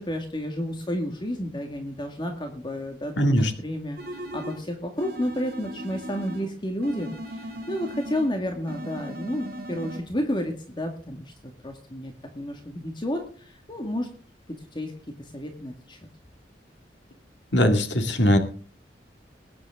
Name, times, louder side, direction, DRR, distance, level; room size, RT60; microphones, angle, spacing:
voice 1, 0.0-14.1 14.7-14.9 15.2-16.0, equal, 25° left, 3 dB, 2.0 m, -31 dB
voice 2, 3.2-3.5 17.5-18.4, equal, 80° left, 5 dB, 2.1 m, -20 dB
sound 1, 4.0-4.7 5.0-6.5 6.8-8.3 8.7-10.0, equal, 55° right, 3.3 m, -37 dB
21.0 x 9.9 x 3.7 m, 0.40 s
head